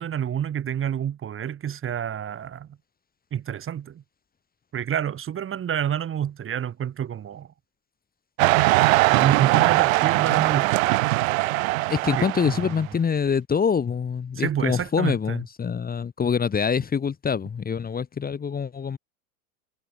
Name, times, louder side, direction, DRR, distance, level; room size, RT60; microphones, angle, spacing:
voice 1, 0.0-2.7 3.3-4.0 4.7-7.5 9.1-10.8 12.2-12.7 14.4-15.4, right 9 dB, 30° right, 2.4 m, -28 dB
sound 1, 8.4-12.7, right 21 dB, 65° right, 0.8 m, -21 dB
voice 2, 11.9-19.0, left 6 dB, 20° left, 2.0 m, -25 dB
hypercardioid pair, 95°, 44 cm